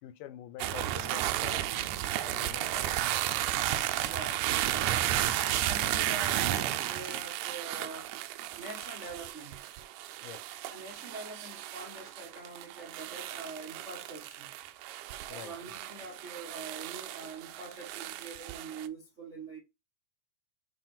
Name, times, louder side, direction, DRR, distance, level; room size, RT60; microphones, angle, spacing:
voice 1, 0.0-2.9 10.2-10.4 15.3-15.5, left 12 dB, 85° left, 2.2 m, -46 dB
sound 1, 0.6-18.9, right 13 dB, 80° right, 2.0 m, -33 dB
voice 2, 4.1-5.0 5.4-8.1 8.5-9.7 10.7-14.5 15.3-19.6, right 3 dB, 45° right, 0.9 m, -44 dB
7.4 x 3.3 x 4.2 m
omnidirectional pair, 3.7 m